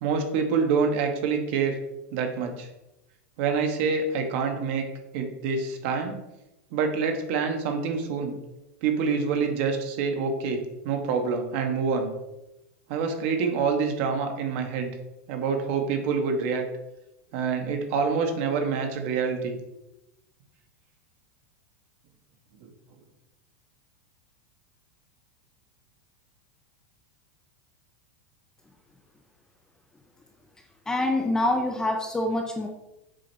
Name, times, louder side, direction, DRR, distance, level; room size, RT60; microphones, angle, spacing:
voice 1, 0.0-1.8 2.1-2.7 3.4-4.9 5.1-6.2 6.7-8.3 8.8-12.1 12.9-14.9 15.3-16.7 17.3-19.6 22.6-22.7, right 5 dB, 45° right, 5 dB, 1.3 m, -26 dB
voice 2, 30.9-32.7, left 1 dB, 5° left, 2 dB, 0.5 m, -25 dB
7.6 x 5.2 x 4.0 m, 0.94 s
supercardioid pair, 165°, 9 cm